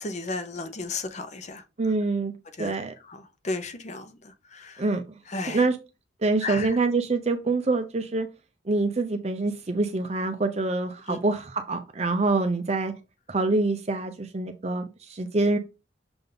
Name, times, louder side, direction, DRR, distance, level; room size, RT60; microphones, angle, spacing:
voice 1, 0.0-1.9 2.5-4.9 5.2-5.7 6.4-6.8 11.1-11.2, left 3 dB, 35° left, 0.9 m, -35 dB
voice 2, 1.8-2.3 2.6-2.9 4.8-5.0 5.5-5.7 6.2-8.3 8.7-12.9 13.3-15.6, right 3 dB, 35° right, 0.6 m, -25 dB
6.8 x 3.6 x 3.8 m
head